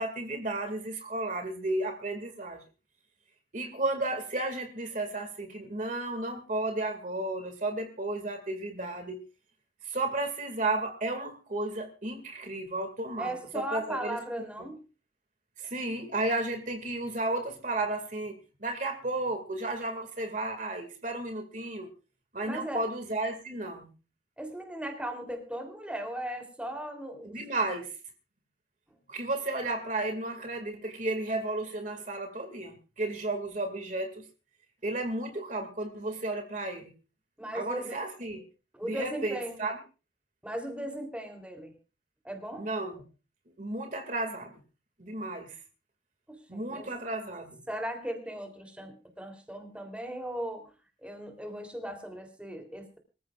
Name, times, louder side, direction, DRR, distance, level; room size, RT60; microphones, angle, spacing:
voice 1, 0.0-2.6 3.5-9.2 9.8-14.2 15.6-21.9 22.3-23.9 27.2-27.9 29.1-34.3 34.8-36.9 37.5-38.4 38.8-39.8 42.6-43.0 43.6-44.6 45.0-45.6 46.5-47.6, right 2 dB, 45° right, 5 dB, 2.2 m, -33 dB
voice 2, 13.2-14.8 22.4-22.8 24.4-27.4 37.4-38.0 38.7-39.6 40.4-41.7 42.2-42.7 46.3-46.9 47.7-50.7 51.0-53.0, right 1 dB, 5° right, 4 dB, 3.3 m, -37 dB
25.0 x 14.5 x 2.4 m, 0.33 s
head